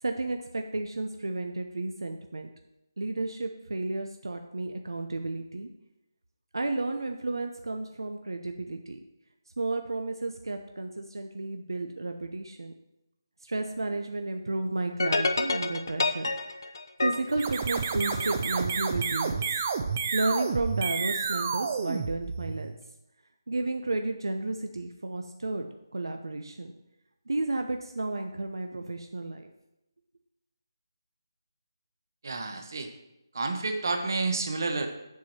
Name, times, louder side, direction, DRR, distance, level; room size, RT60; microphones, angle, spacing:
voice 1, 0.0-2.5 3.0-5.7 6.5-9.0 9.6-12.7 13.4-16.3 17.0-19.6 20.1-22.7 23.5-25.7 25.9-26.7 27.3-29.5, right 2 dB, 80° right, 5 dB, 0.8 m, -32 dB
sound 1, 15.0-18.4, left 3 dB, 60° left, 0.7 m, -29 dB
sound 2, 17.3-22.8, right 5 dB, 25° right, 0.5 m, -30 dB
voice 2, 32.2-32.9 33.3-34.9, right 3 dB, 50° right, 5 dB, 1.2 m, -30 dB
7.8 x 7.4 x 4.4 m, 0.89 s
figure-of-eight pair, 170°, 2 cm